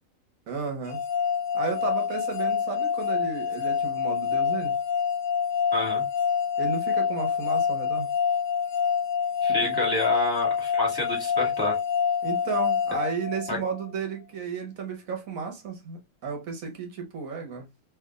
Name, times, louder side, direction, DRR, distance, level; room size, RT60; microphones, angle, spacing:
voice 1, 0.5-1.0 1.5-4.8 6.6-8.1 9.6-9.8 12.2-17.7, right 5 dB, 80° right, 1.6 m, -33 dB
sound 1, 0.9-13.8, left 7 dB, 85° left, 1.2 m, -26 dB
voice 2, 5.7-6.0 9.4-11.8 13.5-13.6, left 1 dB, 15° left, 1.8 m, -29 dB
3.4 x 3.2 x 2.3 m
omnidirectional pair, 1.4 m